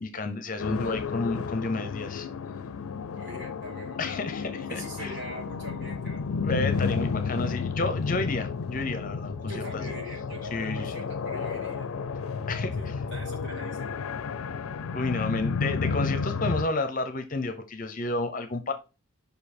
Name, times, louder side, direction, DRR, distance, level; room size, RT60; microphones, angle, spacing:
voice 1, 0.0-2.3 4.0-5.1 6.4-9.8 10.5-10.9 12.5-12.9 14.4-14.5 14.9-18.7, left 2 dB, 40° left, 0.7 m, -31 dB
Little dark house soundscape, 0.6-16.6, left 5 dB, 80° left, 0.4 m, -32 dB
voice 2, 3.1-4.1 4.7-6.3 9.5-11.9 12.8-13.9, right 1 dB, 55° right, 2.3 m, -42 dB
5.3 x 4.7 x 4.2 m
head